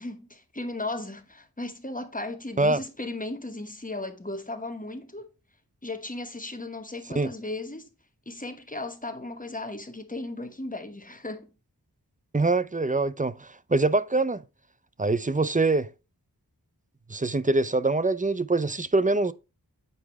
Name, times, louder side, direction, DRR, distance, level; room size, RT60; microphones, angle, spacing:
voice 1, 0.0-5.3 5.8-7.9 8.3-11.5, left 2 dB, 20° left, 1.2 m, -36 dB
voice 2, 12.3-14.4 15.0-15.9 17.1-19.3, right 3 dB, 20° right, 0.5 m, -24 dB
8.0 x 4.6 x 3.4 m
wide cardioid pair, 40°, 38 cm